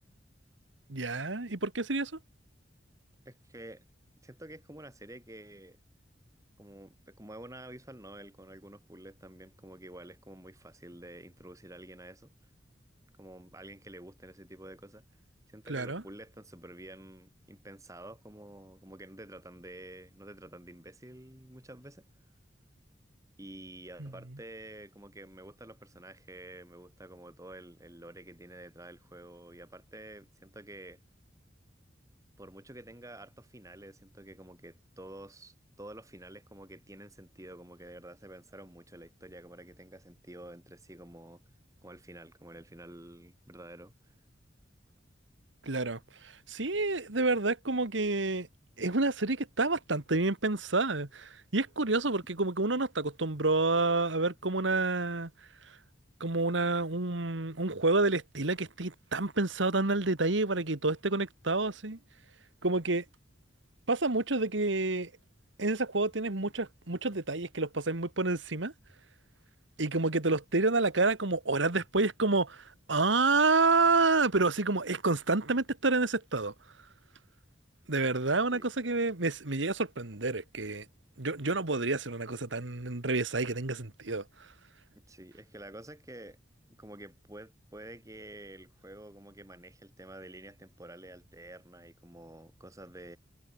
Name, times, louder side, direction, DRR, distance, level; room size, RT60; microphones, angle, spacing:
voice 1, 0.9-2.1 15.7-16.0 24.0-24.1 45.6-46.0 46.5-48.5 48.8-55.3 56.2-62.0 62.6-63.0 63.9-65.1 65.6-68.7 69.8-76.5 77.9-80.8 81.2-84.2, right 3 dB, 85° right, 1.8 m, -29 dB
voice 2, 3.3-3.8 4.2-5.8 6.6-12.3 13.2-15.1 15.5-22.0 23.4-31.0 32.4-41.4 41.8-44.1 78.5-78.7 84.9-86.4 86.8-93.2, right 1 dB, 15° right, 3.9 m, -49 dB
head